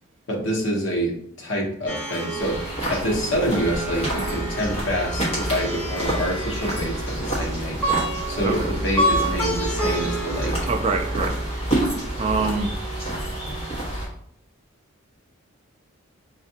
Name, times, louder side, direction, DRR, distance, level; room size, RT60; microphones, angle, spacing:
voice 1, 0.3-7.8 8.3-10.5, equal, 65° left, 0.9 m, -27 dB
Plucked string instrument, 1.9-12.2, right 1 dB, 10° left, 0.8 m, -30 dB
sound 1, 2.4-14.1, right 1 dB, 30° left, 1.2 m, -28 dB
voice 2, 10.7-11.4 12.2-12.8, right 4 dB, 30° right, 0.3 m, -25 dB
4.3 x 2.4 x 2.7 m
head